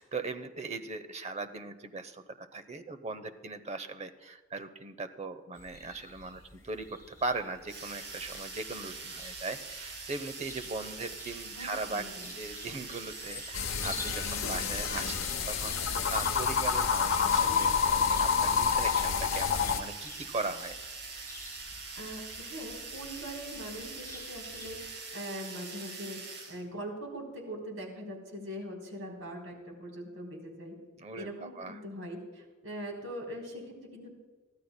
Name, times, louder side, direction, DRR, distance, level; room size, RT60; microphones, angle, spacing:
voice 1, 0.0-12.0 12.4-20.8 31.0-31.8, right 3 dB, 35° right, 10 dB, 0.7 m, -39 dB
sound 1, 5.5-24.9, left 2 dB, 15° left, 3.1 m, -51 dB
sound 2, 7.7-26.6, right 4 dB, 60° right, 2.5 m, -43 dB
voice 2, 11.6-12.4 22.0-26.2 26.5-30.8 31.2-34.1, equal, 85° right, 0 dB, 3.6 m, -42 dB
sound 3, 13.5-19.8, left 6 dB, 75° left, 0.8 m, -28 dB
22.5 x 14.0 x 2.2 m, 1.4 s
head